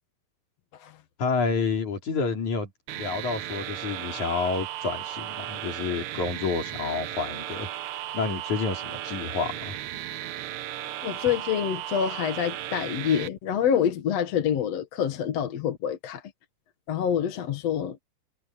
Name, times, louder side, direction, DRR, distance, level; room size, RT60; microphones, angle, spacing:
voice 1, 1.2-7.7 8.1-9.8, left 4 dB, 80° left, 5.4 m, -29 dB
sound 1, 2.9-13.3, right 13 dB, 75° right, 2.2 m, -35 dB
voice 2, 11.0-16.2 16.9-18.0, left 8 dB, 60° left, 2.5 m, -26 dB
omnidirectional pair, 3.4 m